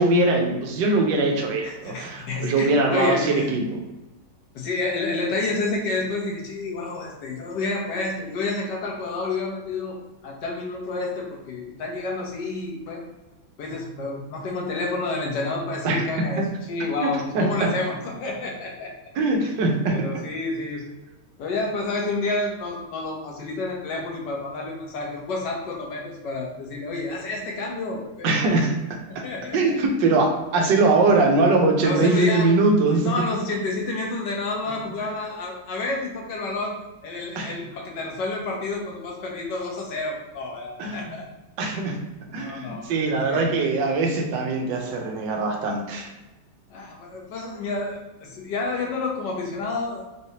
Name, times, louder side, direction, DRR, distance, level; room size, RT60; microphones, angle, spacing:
voice 1, 0.0-3.8 15.8-16.5 17.0-17.1 17.3-17.7 19.1-20.1 28.2-28.7 29.5-33.1 37.3-37.5 40.8-41.2 41.6-42.0 42.3-46.1, right 3 dB, 80° right, 2 dB, 1.4 m, -22 dB
voice 2, 1.6-3.5 4.5-10.0 10.2-13.0 13.6-18.9 19.9-20.8 21.4-28.3 29.1-29.7 31.8-32.5 32.9-36.8 37.0-41.3 42.3-42.9 43.2-43.5 46.7-50.1, left 3 dB, 75° left, 0 dB, 1.5 m, -29 dB
4.2 x 3.3 x 2.8 m, 1.0 s
omnidirectional pair, 1.9 m